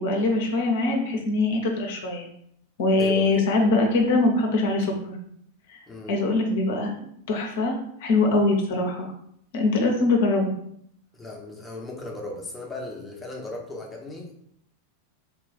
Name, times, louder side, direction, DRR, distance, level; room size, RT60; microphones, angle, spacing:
voice 1, 0.0-2.3 2.8-5.2 5.7-5.8 6.1-6.9 7.3-7.7 8.0-9.1 9.5-10.5, left 2 dB, 55° left, 2 dB, 0.7 m, -22 dB
voice 2, 2.9-3.4 5.9-6.1 11.1-14.3, left 2 dB, 10° left, -1 dB, 0.8 m, -36 dB
3.4 x 2.4 x 4.0 m, 0.70 s
figure-of-eight pair, 90°, 0 cm